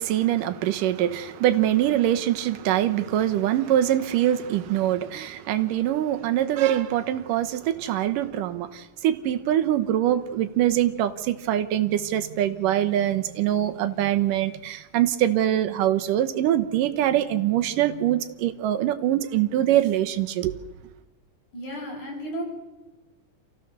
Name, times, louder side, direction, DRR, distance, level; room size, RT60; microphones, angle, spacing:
voice 1, 0.0-20.5, right 12 dB, 90° right, 2.7 m, -23 dB
voice 2, 21.5-22.4, equal, 65° left, 8.6 m, -33 dB
28.5 x 15.5 x 6.7 m
omnidirectional pair, 3.7 m